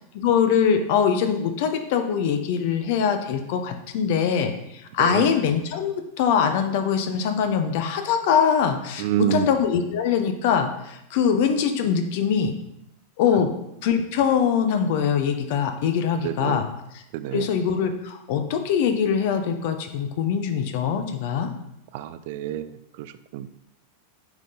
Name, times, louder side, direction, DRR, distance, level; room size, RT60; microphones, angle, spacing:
voice 1, 0.1-12.5 13.2-13.5 13.8-16.7 16.9-17.0 17.3-21.5, left 7 dB, 50° left, 7 dB, 0.8 m, -23 dB
voice 2, 5.0-5.3 9.0-9.5 16.2-16.6 17.1-17.5 21.9-22.7 23.0-23.1 23.3-23.5, right 12 dB, 50° right, 13 dB, 0.4 m, -27 dB
9.0 x 3.8 x 4.0 m, 0.83 s
figure-of-eight pair, 90°, 0 cm